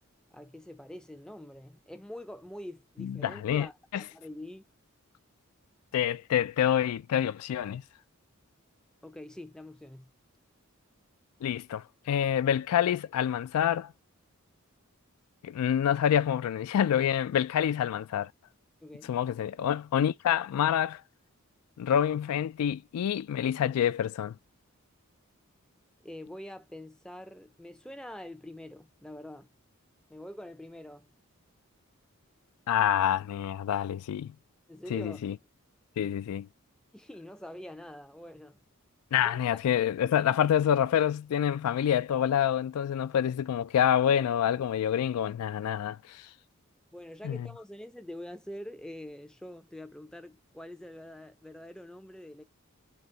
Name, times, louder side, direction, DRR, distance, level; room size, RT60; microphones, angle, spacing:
voice 1, 0.3-4.6 9.0-10.1 18.8-19.1 26.0-29.5 30.1-31.1 34.7-35.2 36.9-38.6 39.2-39.4 44.2-44.3 46.9-52.4, left 1 dB, 5° left, 0.4 m, -45 dB
voice 2, 3.0-3.7 3.9-4.0 5.9-7.8 11.4-13.9 15.4-18.3 19.1-21.0 21.8-24.3 32.7-34.3 34.9-35.3 36.0-36.5 39.1-46.2 47.2-47.5, left 9 dB, 90° left, 0.3 m, -27 dB
4.0 x 2.9 x 3.2 m
head